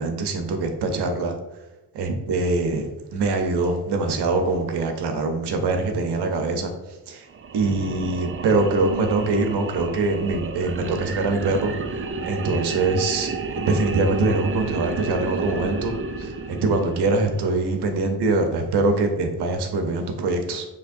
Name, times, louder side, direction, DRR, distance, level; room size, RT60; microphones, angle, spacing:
voice 1, 0.0-1.4 1.9-6.7 7.1-7.3 7.5-11.7 12.2-13.3 13.6-20.7, right 3 dB, 75° right, 5 dB, 0.8 m, -23 dB
sound 1, 7.3-17.6, right 4 dB, 30° right, 0.4 m, -32 dB
6.6 x 3.0 x 2.6 m, 1.0 s
cardioid pair, 75°, 41 cm